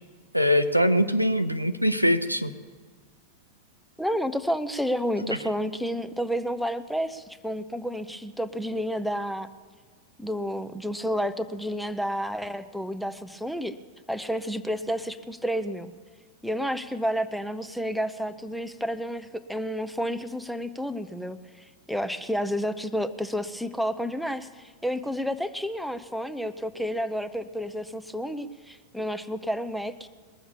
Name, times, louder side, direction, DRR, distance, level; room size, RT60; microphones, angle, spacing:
voice 1, 0.3-2.5, equal, 90° right, 11 dB, 0.5 m, -22 dB
voice 2, 4.0-9.5 10.2-13.8 14.1-15.9 16.4-21.4 21.9-30.1, equal, ahead, 11 dB, 0.6 m, -30 dB
20.5 x 7.2 x 7.2 m, 1.5 s
figure-of-eight pair, 90°, 0 cm